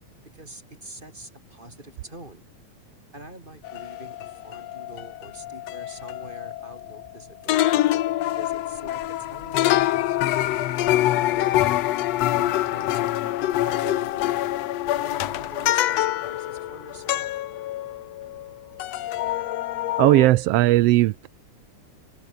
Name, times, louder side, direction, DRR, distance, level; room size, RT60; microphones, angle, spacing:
voice 1, 0.2-2.4 3.1-7.9 8.3-11.7 12.3-13.1 13.4-14.5 14.8-17.4, right 1 dB, 15° right, 6.5 m, -45 dB
sound 1, 3.6-7.2 7.5-18.5 18.8-20.3, left 14 dB, 70° left, 1.8 m, -25 dB
sound 2, 8.2-15.7, left 14 dB, 85° left, 2.4 m, -44 dB
voice 2, 20.0-21.3, right 17 dB, 80° right, 1.4 m, -17 dB
omnidirectional pair, 3.4 m